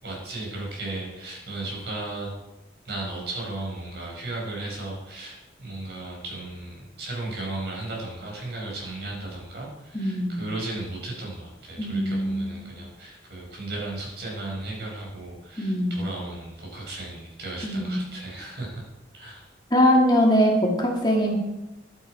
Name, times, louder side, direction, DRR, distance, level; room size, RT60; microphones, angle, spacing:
voice 1, 0.0-2.3 2.8-18.8 19.1-19.5, right 2 dB, 65° right, -2 dB, 4.8 m, -35 dB
voice 2, 9.9-10.4 11.8-12.6 15.6-16.0 17.6-18.1 19.7-21.3, equal, 25° left, -1 dB, 1.8 m, -22 dB
11.5 x 9.0 x 4.6 m, 0.97 s
head